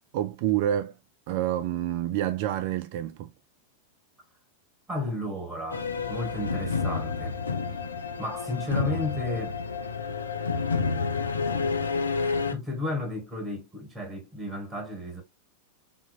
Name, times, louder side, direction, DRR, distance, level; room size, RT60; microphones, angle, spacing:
voice 1, 0.1-0.9 1.3-3.3, right 12 dB, 45° right, 0.3 m, -28 dB
voice 2, 4.9-7.4 7.7-7.9 8.2-9.6 12.1-15.2, left 2 dB, 15° right, 1.4 m, -33 dB
sound 1, 5.7-12.5, left 4 dB, 75° left, 0.4 m, -29 dB
3.8 x 2.9 x 2.3 m
figure-of-eight pair, 90°, 0 cm